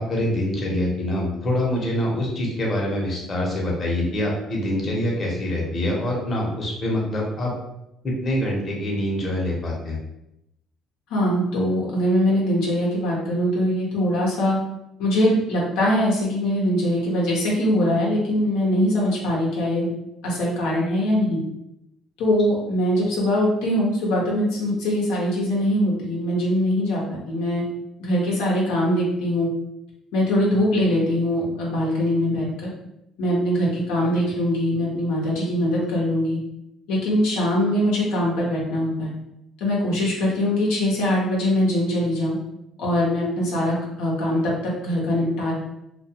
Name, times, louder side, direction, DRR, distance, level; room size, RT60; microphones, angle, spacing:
voice 1, 0.0-7.5 8.0-10.0, left 1 dB, 40° left, -2 dB, 0.8 m, -25 dB
voice 2, 11.1-14.6 15.0-19.9 20.2-21.4 22.2-27.6 28.0-29.5 30.1-32.7 33.2-36.4 36.9-39.1 39.6-42.4 42.8-45.5, equal, 85° left, -4 dB, 0.6 m, -22 dB
2.3 x 2.2 x 2.7 m, 0.85 s
supercardioid pair, 90°, 0 cm